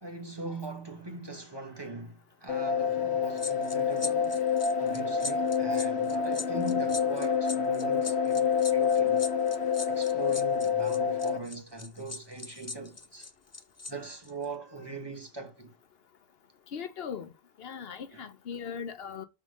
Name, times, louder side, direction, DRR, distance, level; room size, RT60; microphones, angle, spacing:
voice 1, 0.0-4.4 4.8-9.3 9.9-13.3 13.9-15.7 18.1-18.2, right 3 dB, 25° right, 1.3 m, -41 dB
sound 1, 2.5-11.4, left 7 dB, 90° left, 1.3 m, -27 dB
sound 2, 3.4-13.9 14.2-14.4, left 3 dB, 25° left, 0.3 m, -40 dB
voice 2, 16.7-17.3 17.6-19.2, left 7 dB, 70° left, 1.0 m, -39 dB
6.8 x 3.5 x 6.2 m
omnidirectional pair, 1.1 m